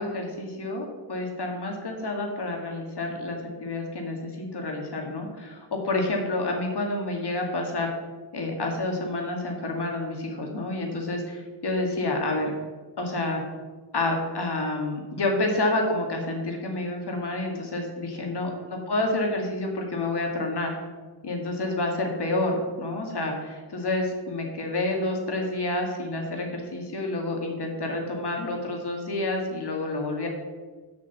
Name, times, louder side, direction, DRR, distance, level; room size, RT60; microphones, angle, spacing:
voice 1, 0.0-7.9 8.3-12.5 13.0-13.4 13.9-20.8 21.2-30.3, left 2 dB, 65° left, 1 dB, 1.9 m, -29 dB
7.0 x 5.2 x 7.1 m, 1.3 s
wide cardioid pair, 115°, 43 cm